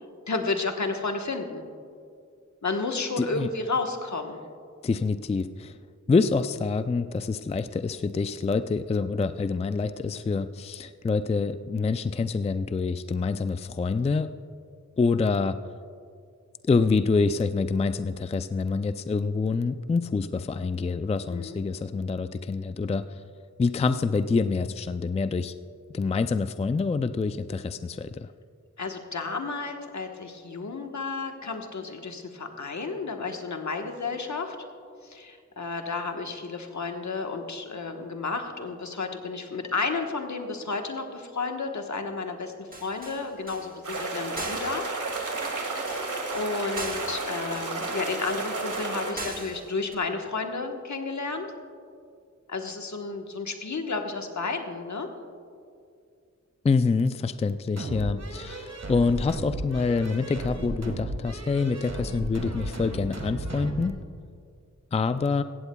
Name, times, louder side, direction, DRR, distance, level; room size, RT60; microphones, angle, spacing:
voice 1, 0.3-1.6 2.6-4.4 21.3-21.6 28.8-34.6 35.0-44.8 45.4-51.5 52.5-55.1, left 3 dB, 65° left, 4 dB, 1.3 m, -32 dB
voice 2, 3.2-3.5 4.8-5.8 6.1-14.3 15.0-15.6 16.6-23.2 23.6-25.5 25.9-28.3 56.6-64.0 64.9-65.4, left 4 dB, 20° left, 12 dB, 0.3 m, -26 dB
sound 1, 42.7-50.0, right 2 dB, 30° right, 1.4 m, -41 dB
sound 2, 43.8-49.1, right 3 dB, 75° right, 1.9 m, -32 dB
sound 3, 57.8-63.9, right 2 dB, 55° right, 1.6 m, -35 dB
16.5 x 15.0 x 2.3 m, 2.3 s
cardioid pair, 50°, 31 cm